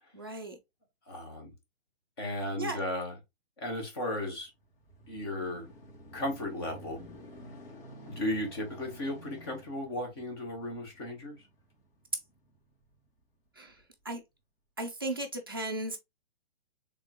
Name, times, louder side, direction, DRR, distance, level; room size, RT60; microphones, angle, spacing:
voice 1, 0.1-0.6 2.6-2.8 13.6-13.7 14.0-14.2 14.8-16.0, right 1 dB, 20° right, 0.4 m, -35 dB
voice 2, 1.1-1.5 2.2-3.2 3.6-4.5 5.1-5.7 6.1-7.0 8.1-11.5, left 1 dB, 25° left, 1.1 m, -35 dB
sound 1, 4.4-13.1 13.7-13.8, equal, 60° left, 2.3 m, -52 dB
3.7 x 3.6 x 2.7 m
hypercardioid pair, 180°, 32 cm